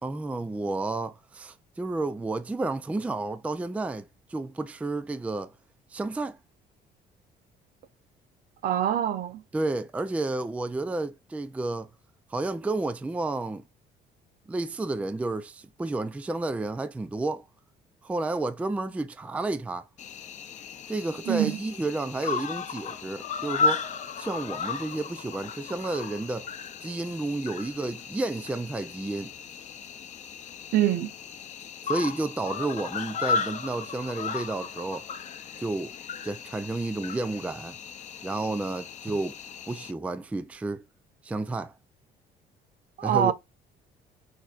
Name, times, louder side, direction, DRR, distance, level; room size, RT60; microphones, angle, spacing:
voice 1, 0.0-5.5 5.9-6.4 9.5-11.9 12.3-13.6 14.5-17.5 18.0-19.9 20.9-23.9 24.2-26.5 26.8-29.3 31.9-35.1 35.6-35.9 36.2-37.8 38.2-39.4 39.7-40.8 41.2-41.7 43.0-43.3, right 2 dB, 10° right, 0.3 m, -31 dB
voice 2, 8.6-9.4 21.3-21.6 30.7-31.1 43.0-43.3, right 11 dB, 60° right, 0.6 m, -24 dB
Cricket, 20.0-39.9, left 5 dB, 45° left, 0.6 m, -35 dB
6.4 x 2.7 x 2.4 m
cardioid pair, 110°, 17 cm